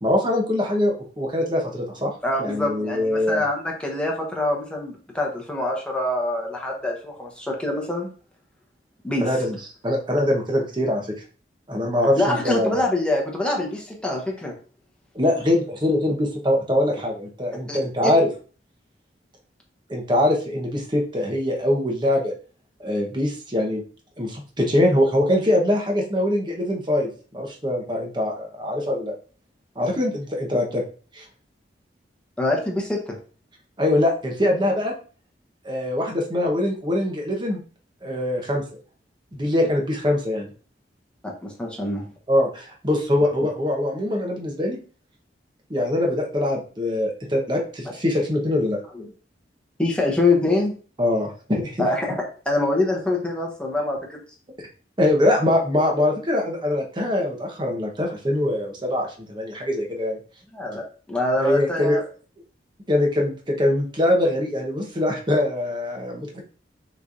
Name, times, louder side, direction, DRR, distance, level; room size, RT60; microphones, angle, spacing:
voice 1, 0.0-2.1 2.4-3.4 9.2-9.6 9.8-11.1 11.7-12.7 15.1-18.3 19.9-22.3 22.8-23.8 24.2-29.1 29.8-30.8 31.1-31.2 33.8-34.9 35.6-37.6 38.0-38.6 39.3-40.5 42.3-44.8 45.7-48.8 51.0-51.9 55.0-60.2 61.4-62.0 62.9-66.4, left 1 dB, 25° right, 1 dB, 1.1 m, -23 dB
voice 2, 2.2-8.1 9.0-9.3 12.2-14.5 17.7-18.1 32.4-33.2 41.2-42.0 48.9-49.1 49.8-50.7 51.8-52.2 52.4-54.2 60.5-62.0, left 2 dB, 5° left, -1 dB, 1.1 m, -25 dB
6.1 x 3.3 x 2.6 m, 0.39 s
head